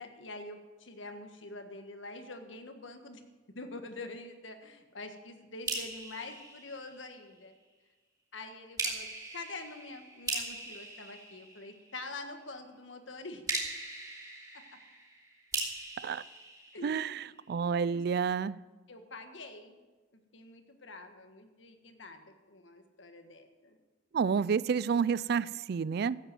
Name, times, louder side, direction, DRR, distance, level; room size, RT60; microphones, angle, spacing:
voice 1, 0.0-3.2 3.5-7.5 8.3-9.1 9.3-13.4 14.5-14.6 16.7-17.2 17.9-18.0 18.9-19.8 20.1-23.8, left 2 dB, 90° left, 6 dB, 1.5 m, -46 dB
sound 1, 5.7-7.4 8.8-12.1 13.5-17.4, right 3 dB, 20° right, 2.9 m, -39 dB
voice 2, 16.8-18.6 24.1-26.2, right 6 dB, 55° right, 20 dB, 0.3 m, -30 dB
14.5 x 7.9 x 7.8 m, 1.3 s
head